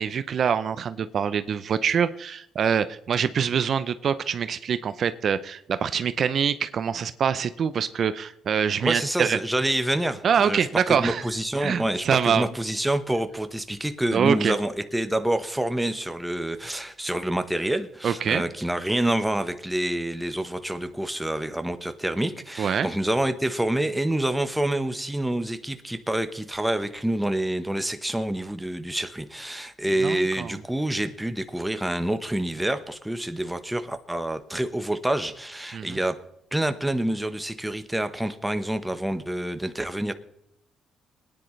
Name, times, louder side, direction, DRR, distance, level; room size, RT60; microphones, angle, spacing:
voice 1, 0.0-9.4 10.2-11.2 11.6-12.5 14.1-14.5 18.0-18.4 22.6-22.9 30.0-30.6 35.7-36.0, right 7 dB, 55° right, 13 dB, 0.6 m, -25 dB
voice 2, 8.8-10.7 11.0-36.2 36.5-40.1, right 1 dB, 5° right, 9 dB, 1.1 m, -27 dB
22.0 x 10.0 x 3.2 m, 0.82 s
cardioid pair, 90°, 0 cm